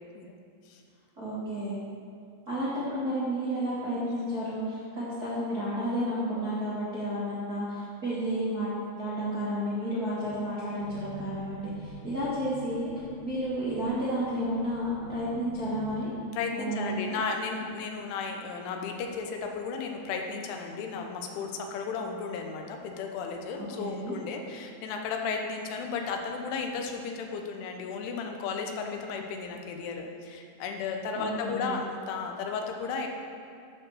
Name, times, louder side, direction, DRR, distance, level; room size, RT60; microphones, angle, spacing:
voice 1, 1.2-1.8 2.5-8.7 9.0-12.9 13.2-16.1 16.6-17.2 23.5-24.1 31.1-31.8, equal, 75° right, -10 dB, 0.8 m, -31 dB
sound 1, 10.8-16.0, equal, 65° left, 2.6 m, -46 dB
voice 2, 16.3-33.1, left 5 dB, 85° left, 3 dB, 3.4 m, -34 dB
12.5 x 4.6 x 6.5 m, 2.3 s
omnidirectional pair, 5.4 m